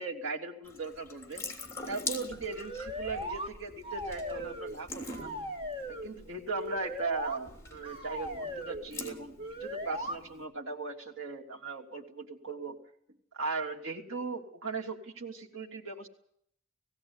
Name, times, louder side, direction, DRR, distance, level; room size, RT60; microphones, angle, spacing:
voice 1, 0.0-1.4 1.9-5.3 5.9-12.8 13.3-16.1, right 4 dB, 75° right, 0 dB, 3.1 m, -38 dB
Water tap faucet / Sink (filling or washing) / Drip, 0.6-10.4, left 3 dB, 15° left, 3.3 m, -44 dB
sound 1, 2.4-3.5 3.8-4.8 5.1-6.1 6.6-7.4 7.8-8.8 9.4-10.2, equal, 25° right, 2.0 m, -38 dB
18.5 x 16.5 x 9.8 m, 0.70 s
head